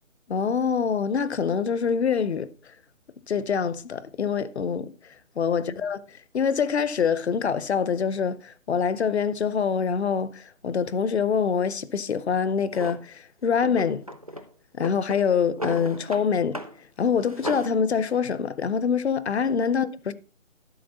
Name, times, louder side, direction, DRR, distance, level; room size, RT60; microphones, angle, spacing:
voice 1, 0.3-2.5 3.3-4.9 5.4-6.0 6.3-14.0 14.7-16.6 17.0-20.1, left 6 dB, 55° left, 0.7 m, -25 dB
Drawer open or close, 12.7-13.0 13.6-14.5 14.8-16.3 16.5-16.8 17.1-17.8, equal, 30° right, 0.4 m, -35 dB
12.0 x 6.5 x 4.0 m
hypercardioid pair, 160°, 40 cm